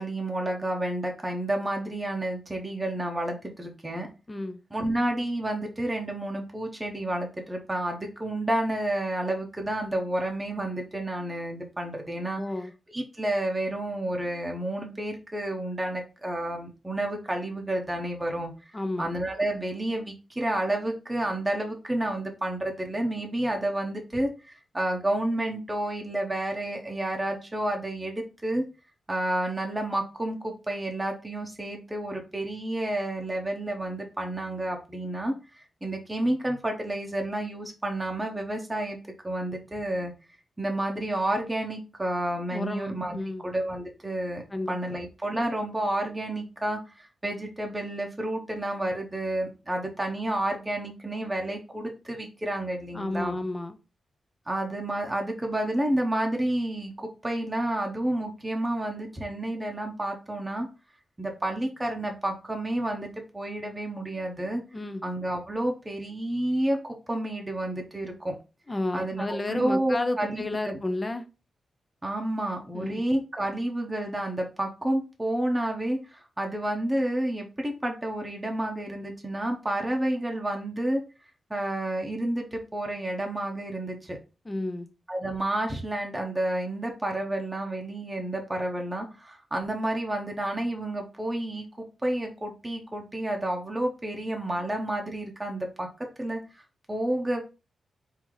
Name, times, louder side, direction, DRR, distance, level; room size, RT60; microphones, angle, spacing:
voice 1, 0.0-4.1 4.7-12.4 12.9-18.5 19.0-28.6 29.1-39.0 39.2-40.1 40.6-53.4 54.5-60.7 61.2-64.6 65.0-68.4 68.9-70.8 72.0-81.0 81.5-84.2 85.1-95.9 96.2-97.4, right 1 dB, 15° right, 0.8 m, -30 dB
voice 2, 4.3-4.6 12.4-12.7 18.7-19.1 42.5-43.4 44.5-44.7 52.9-53.8 64.7-65.0 68.7-71.3 72.7-73.0 84.5-84.9, left 2 dB, 20° left, 0.5 m, -31 dB
4.6 x 2.7 x 3.8 m
wide cardioid pair, 140°, 0 cm